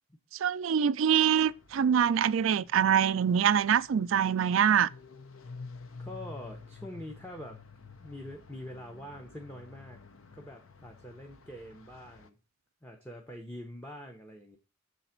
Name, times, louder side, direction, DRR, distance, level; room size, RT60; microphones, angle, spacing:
voice 1, 0.4-4.9, right 8 dB, 70° right, 0.4 m, -24 dB
sound 1, 1.2-12.3, left 4 dB, 90° left, 0.8 m, -50 dB
voice 2, 6.0-7.6 8.0-10.0 10.4-12.4 12.8-14.6, left 1 dB, 10° left, 0.8 m, -44 dB
6.8 x 4.0 x 5.7 m
head